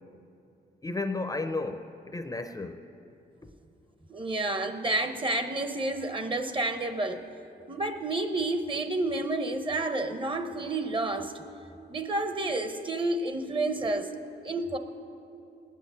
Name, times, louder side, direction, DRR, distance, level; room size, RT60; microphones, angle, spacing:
voice 1, 0.8-2.8 3.4-3.5, left 3 dB, 20° left, 8 dB, 0.6 m, -33 dB
voice 2, 4.1-7.2 7.7-11.4 11.9-14.1 14.4-14.8, right 2 dB, 25° right, 8 dB, 0.9 m, -30 dB
19.0 x 6.5 x 9.5 m, 2.7 s
wide cardioid pair, 120°, 19 cm